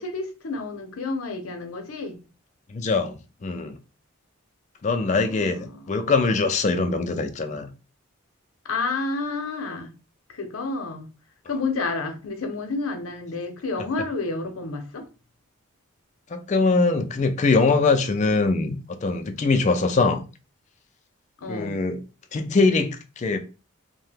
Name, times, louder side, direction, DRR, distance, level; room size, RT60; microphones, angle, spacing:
voice 1, 0.0-2.1 5.0-6.1 8.6-9.9 10.3-11.1 11.5-15.1 21.4-21.8, left 3 dB, 90° left, 0.6 m, -30 dB
voice 2, 2.7-3.8 4.8-7.7 16.3-20.2 21.5-22.0 22.3-23.4, left 3 dB, 35° left, 0.3 m, -22 dB
2.7 x 2.1 x 3.3 m
head